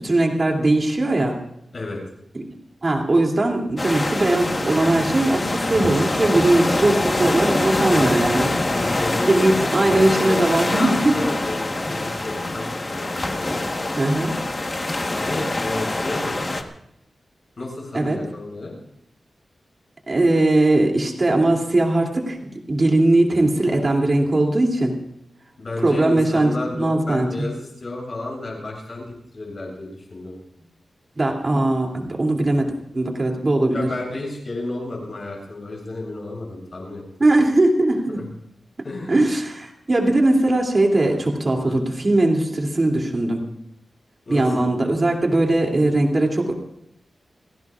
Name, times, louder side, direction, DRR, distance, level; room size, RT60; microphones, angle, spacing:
voice 1, 0.0-1.4 2.8-8.5 9.2-11.3 14.0-14.3 17.9-18.2 20.1-22.4 22.7-25.0 25.8-27.5 31.2-33.9 37.2-38.2 39.1-43.4 44.3-46.5, right 2 dB, 30° right, 1 dB, 2.7 m, -19 dB
sound 1, 3.8-16.6, left 2 dB, 25° left, 1.2 m, -24 dB
voice 2, 8.7-13.6 15.2-16.6 17.6-18.8 25.6-30.4 33.7-37.0 38.1-38.2 38.8-39.2 41.6-41.8 44.3-44.7, left 2 dB, 40° left, -2 dB, 7.5 m, -32 dB
29.5 x 17.0 x 2.4 m, 0.77 s
wide cardioid pair, 180°, 0 cm